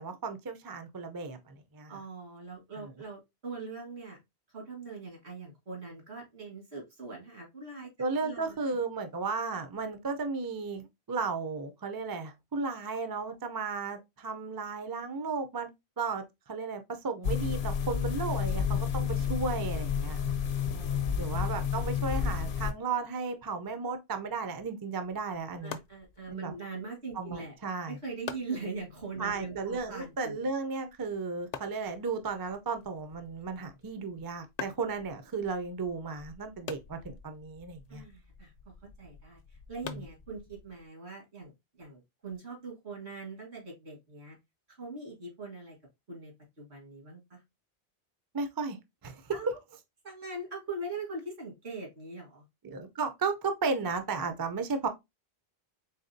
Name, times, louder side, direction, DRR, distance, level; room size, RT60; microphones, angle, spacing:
voice 1, 0.0-1.9 2.8-2.9 8.0-15.7 16.0-20.2 21.1-25.8 26.3-26.5 27.1-28.0 29.2-38.0 39.8-40.0 48.3-48.8 49.0-49.4 52.6-54.9, right 4 dB, 30° right, 0.4 m, -34 dB
voice 2, 1.9-4.2 4.5-7.9 8.2-8.8 20.5-21.3 25.6-27.5 27.9-30.5 37.9-39.4 39.7-41.5 41.8-44.4 44.7-45.8 46.1-46.3 46.6-47.4 49.3-49.5 50.0-52.4, right 3 dB, 75° right, 2.1 m, -42 dB
sound 1, 17.2-22.7, left 7 dB, 75° left, 0.9 m, -30 dB
sound 2, 25.0-40.9, left 7 dB, 55° left, 0.5 m, -48 dB
4.0 x 3.5 x 2.6 m
omnidirectional pair, 1.1 m